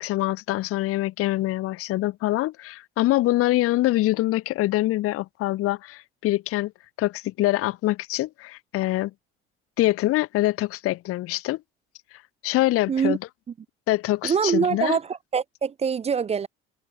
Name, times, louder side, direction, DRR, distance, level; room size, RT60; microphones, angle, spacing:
voice 1, 0.0-6.7 7.0-9.1 9.8-11.6 12.4-13.2 13.9-15.0, left 16 dB, 50° left, 0.5 m, -24 dB
voice 2, 14.2-16.5, right 6 dB, 20° right, 0.4 m, -24 dB
hypercardioid pair, 65°, 30 cm